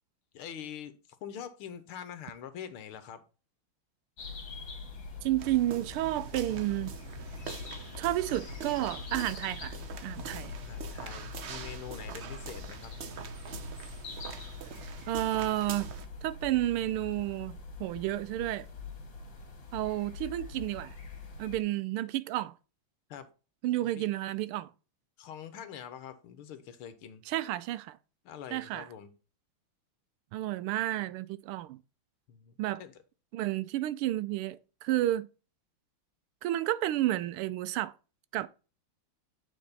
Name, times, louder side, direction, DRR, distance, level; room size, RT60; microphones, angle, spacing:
voice 1, 0.3-1.0 1.2-3.2 10.2-12.9 23.1-23.3 24.0-24.1 25.2-27.2 28.3-29.1 32.3-32.9, left 8 dB, 85° left, 1.9 m, -44 dB
Sitting in the park, 4.2-21.6, left 4 dB, 65° left, 2.5 m, -44 dB
voice 2, 5.2-6.9 8.0-9.8 10.0-10.5 15.1-15.9 16.2-18.7 19.7-20.9 21.4-22.5 23.6-24.7 27.3-28.0 28.5-28.9 30.3-31.8 32.6-32.8 33.3-35.3 36.4-37.9 38.3-38.5, right 14 dB, 90° right, 1.5 m, -31 dB
sound 1, 5.4-16.1, right 7 dB, 70° right, 0.6 m, -44 dB
9.2 x 4.5 x 4.0 m
omnidirectional pair, 2.3 m